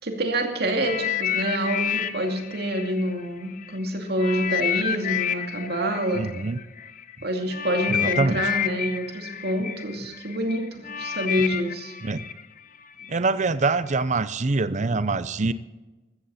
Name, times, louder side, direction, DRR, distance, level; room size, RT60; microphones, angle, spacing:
voice 1, 0.0-6.3 7.2-11.9 13.0-13.1, right 1 dB, 60° right, 3 dB, 2.4 m, -27 dB
sound 1, 0.8-3.7 4.2-13.2 13.9-14.0, left 9 dB, 45° left, 0.7 m, -30 dB
voice 2, 6.1-6.6 7.9-8.4 12.0-12.2 13.1-15.5, right 3 dB, 40° right, 15 dB, 0.6 m, -24 dB
14.5 x 14.5 x 4.3 m, 1.1 s
head